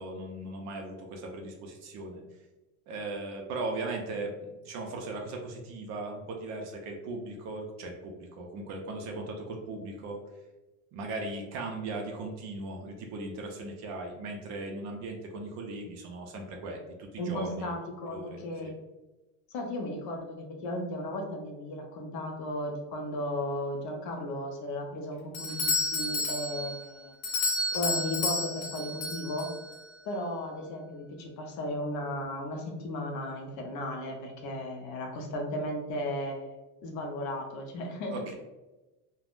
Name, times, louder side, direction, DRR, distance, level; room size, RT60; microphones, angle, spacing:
voice 1, 0.0-2.2 2.9-10.2 10.9-16.8 17.1-17.8 18.1-18.7 38.1-38.3, right 2 dB, 45° right, 2 dB, 0.5 m, -38 dB
voice 2, 17.2-18.8 19.5-27.1 27.7-29.5 30.0-38.3, left 1 dB, 45° left, 1 dB, 0.6 m, -35 dB
Doorbell, 25.3-29.8, left 2 dB, 80° left, 0.8 m, -31 dB
3.3 x 2.1 x 2.4 m, 1.1 s
cardioid pair, 150°, 39 cm